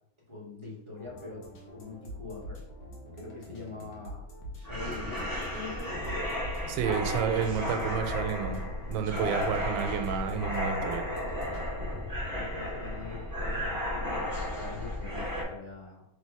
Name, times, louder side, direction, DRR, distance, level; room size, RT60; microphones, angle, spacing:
voice 1, 0.3-1.4 1.7-2.6 3.1-5.9 12.3-16.0, left 4 dB, 50° right, -6 dB, 0.3 m, -43 dB
sound 1, 1.0-11.7, equal, 65° left, 1.6 m, -45 dB
sound 2, 4.6-15.4, left 1 dB, 15° left, 0.8 m, -34 dB
voice 2, 6.7-8.6 8.9-11.1, right 7 dB, 85° right, 6 dB, 1.4 m, -30 dB
3.2 x 3.2 x 4.5 m, 0.87 s
omnidirectional pair, 2.1 m